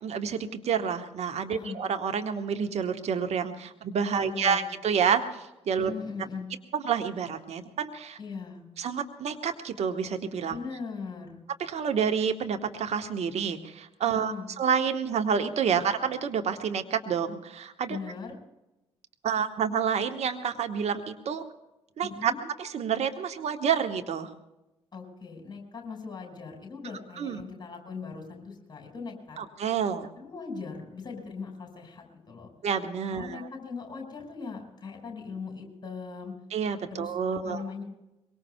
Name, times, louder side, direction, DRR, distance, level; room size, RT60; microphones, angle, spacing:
voice 1, 0.0-5.2 5.7-5.9 6.7-8.2 8.8-10.5 11.6-18.0 19.2-21.4 22.0-22.3 22.6-24.3 27.2-27.4 29.4-30.1 32.6-33.4 36.5-37.6, right 7 dB, 50° right, 7 dB, 1.4 m, -28 dB
voice 2, 4.1-4.6 5.8-6.5 8.2-8.6 10.5-11.4 14.0-14.5 17.9-18.4 22.0-22.4 24.9-29.4 30.2-32.5 33.1-36.3 36.9-37.2 37.4-37.8, left 5 dB, 30° left, 1 dB, 5.4 m, -39 dB
23.0 x 23.0 x 2.3 m, 0.95 s
figure-of-eight pair, 40°, 14 cm